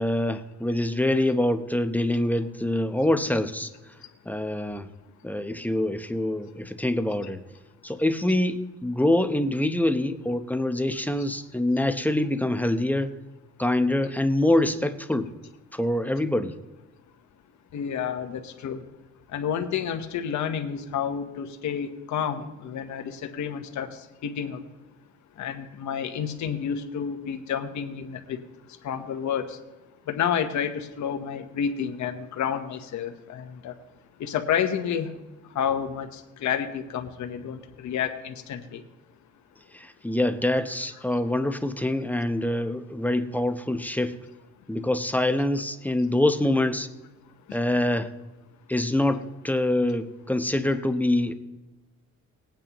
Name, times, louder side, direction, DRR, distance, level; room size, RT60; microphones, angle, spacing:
voice 1, 0.0-3.7 4.3-4.9 5.2-7.4 7.8-13.2 13.6-15.3 15.7-16.5 39.7-44.1 44.7-46.9 47.5-48.1 48.7-51.3, left 1 dB, 5° left, 9 dB, 0.8 m, -25 dB
voice 2, 17.7-18.8 19.3-24.6 25.4-28.4 28.8-29.6 30.1-33.7 34.2-35.1 35.5-38.8 47.5-47.6, left 8 dB, 70° left, 5 dB, 1.1 m, -30 dB
19.5 x 9.0 x 3.0 m, 1.1 s
cardioid pair, 90°, 30 cm